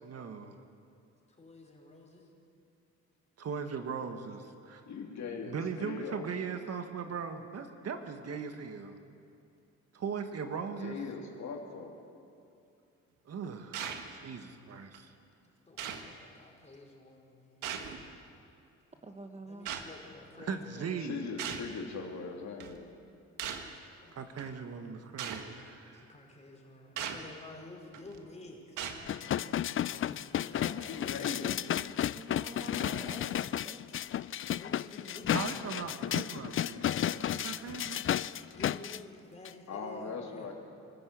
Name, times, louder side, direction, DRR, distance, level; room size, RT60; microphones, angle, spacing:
voice 1, 0.0-0.5 3.4-4.8 5.4-9.0 9.9-11.0 13.2-13.8 14.1-15.1 20.4-21.3 24.1-26.1 35.3-36.9 37.4-38.0, right 6 dB, 55° right, 7 dB, 1.7 m, -39 dB
voice 2, 1.4-2.3 15.4-18.1 19.5-21.0 23.7-24.2 25.9-31.1 34.5-35.6 38.5-40.5, left 2 dB, 20° left, -1 dB, 5.2 m, -51 dB
voice 3, 4.9-6.2 10.8-12.0 21.0-22.9 30.5-31.6 36.7-37.2 39.7-40.5, left 5 dB, 65° left, 1 dB, 3.2 m, -40 dB
sound 1, 13.7-14.1 14.9-15.0 15.8-16.1 17.6-18.1 19.7-19.9 21.4-21.7 22.6-22.8 23.4-23.7 24.4-24.5 25.2-25.5 27.0-27.3 27.9-28.2 28.8-29.1, right 8 dB, 90° right, 1.6 m, -38 dB
voice 4, 19.0-19.7 32.1-34.1, right 2 dB, 20° right, 5 dB, 1.4 m, -47 dB
sound 2, 29.1-39.0 39.4-39.5, left 11 dB, 45° left, 0.5 m, -33 dB
25.0 x 13.5 x 8.4 m, 2.6 s
cardioid pair, 90°, 30 cm